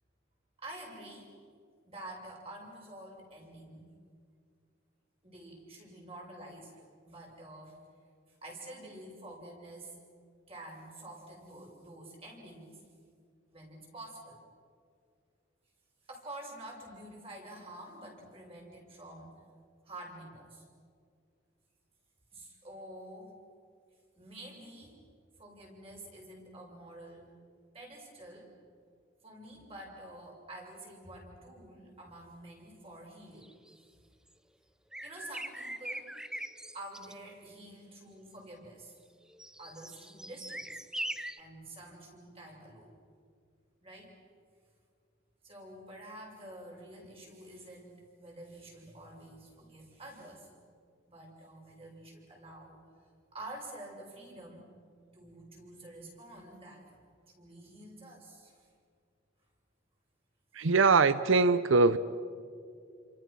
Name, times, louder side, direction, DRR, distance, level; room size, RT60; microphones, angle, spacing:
voice 1, 0.6-1.3 1.9-3.9 5.2-7.8 8.4-10.0 10.5-12.8 13.5-14.4 16.1-19.3 19.8-20.6 22.3-23.4 24.1-25.0 25.4-27.3 27.7-28.5 29.2-33.5 35.0-36.1 36.7-38.9 39.6-40.8 41.4-43.0 43.8-44.1 45.4-50.5 51.1-52.8 53.3-54.6 55.1-56.9 57.4-58.7, right 1 dB, 30° right, 6.5 m, -48 dB
sound 1, 33.4-33.7 34.9-37.1 39.3-41.4, right 1 dB, 5° right, 0.5 m, -41 dB
voice 2, 60.5-62.0, right 4 dB, 80° right, 0.7 m, -22 dB
29.5 x 27.0 x 6.2 m
head